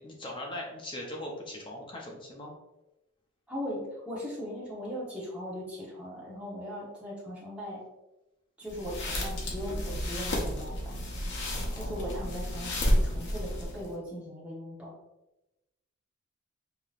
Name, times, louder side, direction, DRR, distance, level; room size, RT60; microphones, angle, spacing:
voice 1, 0.0-2.5 11.7-12.3, left 1 dB, 25° left, -1 dB, 0.6 m, -40 dB
voice 2, 3.5-7.8 8.6-10.9 11.7-15.0, equal, 5° right, -7 dB, 1.0 m, -39 dB
sound 1, 8.7-13.9, equal, 55° left, 0.8 m, -31 dB
4.8 x 2.9 x 2.4 m, 0.97 s
head